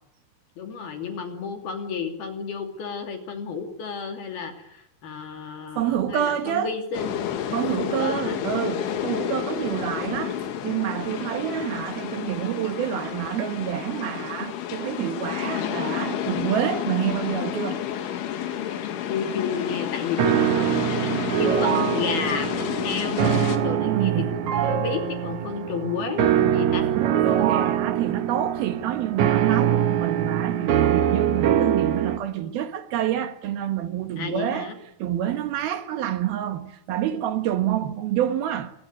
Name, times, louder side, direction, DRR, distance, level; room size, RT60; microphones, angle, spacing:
voice 1, 0.6-7.2 7.6-8.4 19.1-26.9 34.2-34.8, left 5 dB, 55° left, 4.4 m, -32 dB
voice 2, 5.8-6.7 7.5-17.8 23.8-24.3 27.3-34.7 35.0-38.7, right 11 dB, 65° right, 2.7 m, -27 dB
sound 1, 6.9-23.6, left 10 dB, 80° left, 4.5 m, -30 dB
sound 2, 20.2-32.2, right 10 dB, 85° right, 1.6 m, -23 dB
28.0 x 21.0 x 9.6 m
omnidirectional pair, 5.6 m